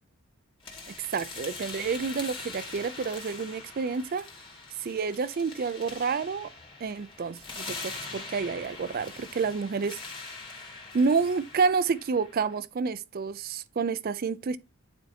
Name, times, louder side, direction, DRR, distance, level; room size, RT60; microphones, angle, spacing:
sound 1, 0.6-12.6, left 3 dB, 25° left, 1.7 m, -43 dB
voice 1, 1.1-4.3 4.8-6.5 6.8-10.0 10.9-14.6, right 5 dB, 40° right, 0.4 m, -29 dB
9.2 x 4.5 x 2.7 m
head